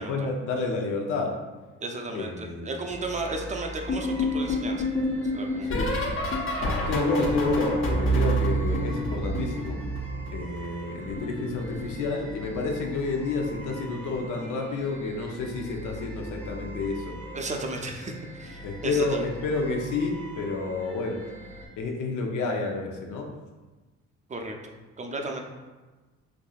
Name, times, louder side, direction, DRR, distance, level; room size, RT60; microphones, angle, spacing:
voice 1, 0.0-1.4 2.1-2.8 5.6-6.0 6.8-9.8 10.3-17.2 18.6-21.2 21.8-23.3, left 3 dB, 80° left, 1 dB, 0.7 m, -30 dB
voice 2, 1.8-4.9 5.3-5.7 17.3-19.3 24.3-25.4, right 2 dB, 25° right, 3 dB, 0.5 m, -34 dB
sound 1, 2.9-21.7, equal, 5° left, 0.8 m, -43 dB
sound 2, 3.9-10.7 10.9-12.5 13.5-13.9 14.1-14.5 16.0-16.3 16.6-16.9 18.4-18.5, equal, 45° left, 0.8 m, -28 dB
4.6 x 2.6 x 2.4 m, 1.2 s
cardioid pair, 90°, 30 cm